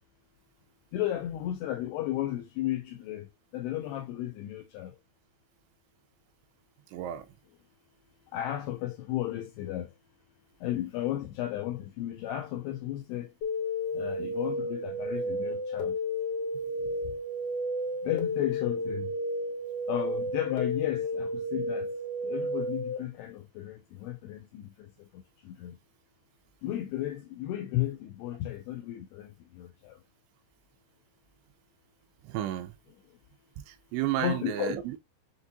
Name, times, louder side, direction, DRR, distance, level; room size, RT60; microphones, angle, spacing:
voice 1, 0.9-3.3 3.5-4.9 8.3-9.9 10.6-13.3 13.9-16.0 18.0-19.1 19.9-21.9 22.2-24.6 25.5-25.7 26.6-29.3 29.6-29.9 34.2-34.8, left 13 dB, 85° left, 2.3 m, -34 dB
voice 2, 6.9-7.3 32.2-32.7 33.7-35.0, right 12 dB, 85° right, 2.7 m, -32 dB
sound 1, 13.4-23.0, left 1 dB, 65° left, 2.0 m, -32 dB
7.1 x 2.7 x 2.5 m
omnidirectional pair, 5.1 m